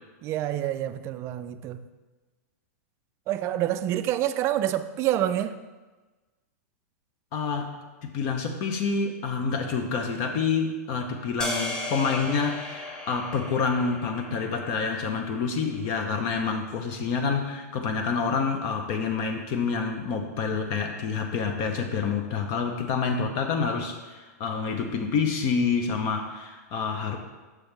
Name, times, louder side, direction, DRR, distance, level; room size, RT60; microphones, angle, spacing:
voice 1, 0.2-1.8 3.3-5.6, right 12 dB, 30° right, 0.3 m, -27 dB
voice 2, 7.3-27.2, left 5 dB, 45° left, 0.7 m, -28 dB
sound 1, 11.4-15.8, left 2 dB, 10° left, 0.8 m, -36 dB
6.2 x 6.0 x 3.3 m
hypercardioid pair, 125°, 9 cm